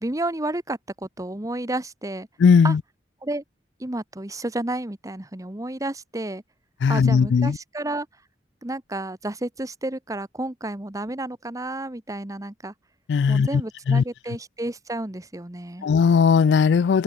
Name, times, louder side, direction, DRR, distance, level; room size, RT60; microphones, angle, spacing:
voice 1, 0.0-2.3 2.6-2.8 3.2-3.4 3.8-6.4 6.9-8.1 8.6-12.7 13.3-15.9, right 1 dB, 20° right, 1.1 m, -31 dB
voice 2, 2.4-2.8 6.8-7.6 13.1-13.5 13.9-14.0 15.8-17.0, left 6 dB, 70° left, 0.3 m, -17 dB
head